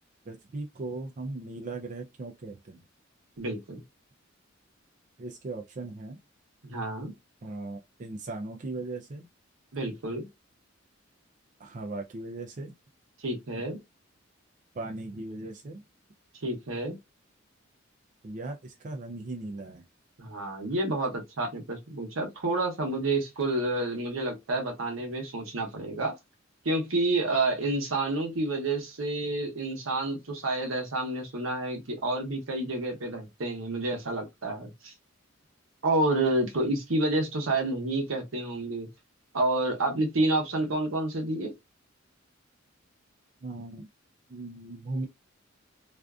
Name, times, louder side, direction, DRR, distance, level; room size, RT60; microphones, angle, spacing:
voice 1, 0.3-2.8 5.2-6.2 7.4-9.3 11.6-12.7 14.7-15.8 18.2-19.8 43.4-43.9 44.3-45.1, right 2 dB, 40° right, 0.4 m, -38 dB
voice 2, 3.4-3.8 6.6-7.1 9.7-10.3 13.2-13.8 16.4-17.0 20.2-26.1 26.6-34.9 35.8-38.9 39.3-41.5, right 2 dB, 85° right, 0.8 m, -29 dB
2.5 x 2.4 x 2.3 m
head